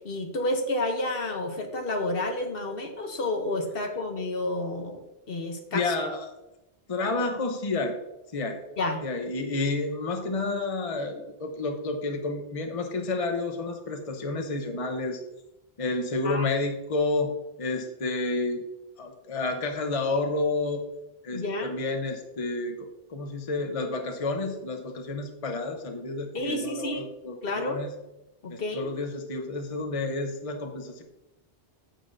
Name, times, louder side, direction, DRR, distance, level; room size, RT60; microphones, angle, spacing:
voice 1, 0.0-5.9 8.8-9.0 16.2-16.5 21.3-21.8 26.3-27.1 27.4-27.8 28.4-28.9, left 2 dB, 65° left, 4 dB, 1.2 m, -30 dB
voice 2, 5.7-6.3 6.9-7.9 8.3-8.6 9.0-15.2 15.8-18.6 19.0-20.8 21.2-27.9 28.5-31.0, left 3 dB, 35° left, 4 dB, 0.9 m, -30 dB
9.1 x 8.4 x 2.6 m, 0.92 s
omnidirectional pair, 1.1 m